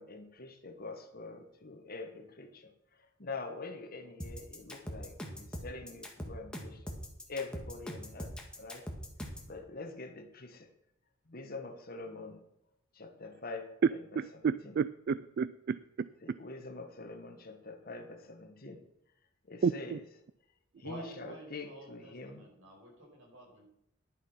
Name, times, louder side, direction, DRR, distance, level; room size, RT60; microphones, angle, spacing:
voice 1, 0.0-7.0 7.3-8.9 9.5-10.7 11.3-12.4 12.9-14.7 16.2-18.9 19.4-20.0 20.8-22.4, left 3 dB, 45° left, 6 dB, 1.4 m, -45 dB
sound 1, 4.2-9.5, equal, 5° left, 1.6 m, -42 dB
voice 2, 14.2-16.1 19.6-20.0, right 6 dB, 50° right, 16 dB, 0.3 m, -31 dB
voice 3, 20.8-23.6, equal, 70° right, -2 dB, 5.5 m, -49 dB
11.0 x 7.4 x 5.6 m, 0.78 s
head